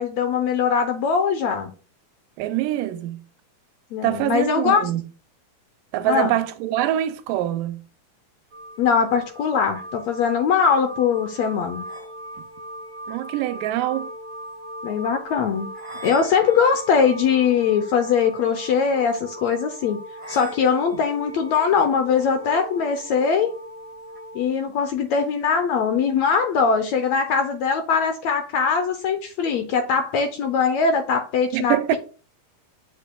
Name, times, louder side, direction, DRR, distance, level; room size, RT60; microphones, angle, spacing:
voice 1, 0.0-1.7 3.9-4.8 6.0-6.3 8.8-11.8 14.8-15.7 16.0-20.0 20.3-23.5 24.3-32.0, left 6 dB, 75° left, 1.7 m, -21 dB
voice 2, 2.4-3.2 4.0-5.0 5.9-7.9 13.1-14.1 31.5-32.0, right 13 dB, 90° right, 2.3 m, -24 dB
sound 1, 8.5-24.5, equal, 25° right, 1.9 m, -39 dB
7.8 x 6.7 x 2.3 m
omnidirectional pair, 3.8 m